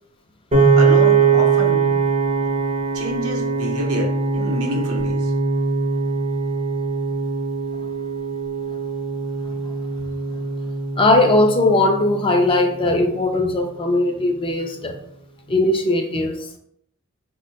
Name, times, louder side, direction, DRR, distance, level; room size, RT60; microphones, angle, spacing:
Piano, 0.5-12.8, right 5 dB, 30° right, 0.5 m, -21 dB
voice 1, 0.8-2.0 2.9-5.3, equal, 75° right, 0 dB, 0.7 m, -28 dB
voice 2, 11.0-14.9 15.5-16.5, left 2 dB, 25° left, 4 dB, 0.3 m, -19 dB
3.6 x 2.1 x 2.7 m, 0.70 s
head